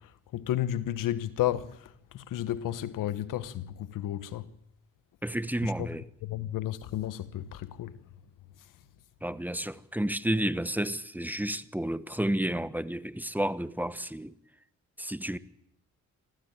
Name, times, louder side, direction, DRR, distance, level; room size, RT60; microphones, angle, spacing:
voice 1, 0.0-4.5 5.6-5.9 6.2-8.0, left 12 dB, 90° left, 1.4 m, -33 dB
voice 2, 5.2-6.1 9.2-14.3 15.0-15.4, right 1 dB, 5° right, 1.1 m, -31 dB
25.5 x 15.5 x 9.0 m
cardioid pair, 100°, 31 cm